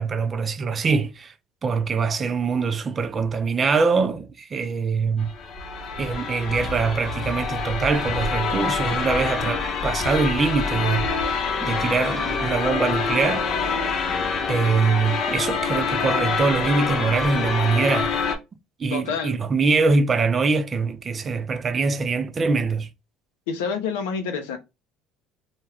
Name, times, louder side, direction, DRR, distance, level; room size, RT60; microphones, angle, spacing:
voice 1, 0.0-1.3 1.6-5.3 5.9-13.5 14.5-18.1 18.8-22.9, right 4 dB, 35° right, 0.4 m, -23 dB
sound 1, 5.2-18.4, left 5 dB, 50° left, 0.7 m, -26 dB
voice 2, 18.9-19.4 23.5-24.6, left 5 dB, 85° left, 0.6 m, -28 dB
2.2 x 2.2 x 3.3 m
supercardioid pair, 85°, 0 cm